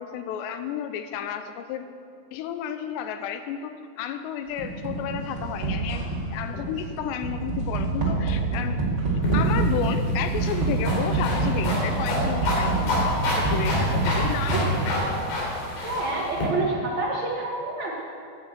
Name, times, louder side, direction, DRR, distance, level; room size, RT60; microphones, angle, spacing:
voice 1, 0.0-1.9 2.3-8.9 9.3-13.0 13.4-15.0, left 8 dB, 85° left, 9 dB, 2.8 m, -32 dB
sound 1, 4.6-15.5, right 3 dB, 40° right, 2.2 m, -27 dB
sound 2, 6.5-6.8 7.2-7.5 8.0-8.3 8.8-9.0 9.5-10.5 11.0-11.3 11.6-12.1 12.6-12.8 13.5-13.7, left 1 dB, 40° left, 3.6 m, -47 dB
sound 3, 9.2-16.5, left 1 dB, 60° left, 4.6 m, -27 dB
voice 2, 15.8-17.9, right 2 dB, 55° right, -4 dB, 2.1 m, -27 dB
11.0 x 10.5 x 8.1 m, 2.3 s
omnidirectional pair, 5.1 m